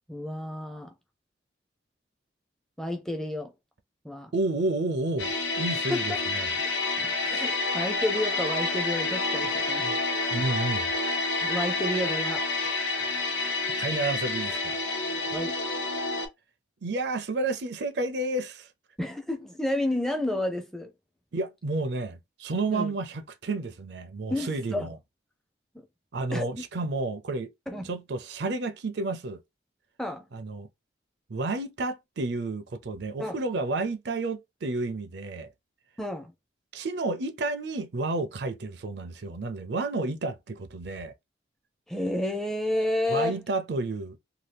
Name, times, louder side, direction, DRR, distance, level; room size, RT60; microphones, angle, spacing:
voice 1, 0.1-0.9 2.8-3.5 4.0-4.3 5.9-6.2 7.0-10.0 11.4-12.5 15.3-15.6 19.0-20.9 22.7-22.9 24.3-24.9 25.7-25.8 26.3-26.6 27.7-27.9 30.0-30.3 33.2-33.4 36.0-36.3 41.9-43.4, left 1 dB, ahead, 0.5 m, -31 dB
voice 2, 4.3-6.5 10.3-10.9 13.0-13.1 13.8-14.8 16.8-18.7 21.3-25.0 26.1-27.5 27.8-29.4 30.3-30.7 31.3-35.5 36.7-41.1 43.1-44.2, right 2 dB, 65° right, 0.5 m, -31 dB
sound 1, 5.2-16.3, left 3 dB, 80° left, 0.8 m, -29 dB
2.7 x 2.3 x 3.3 m
head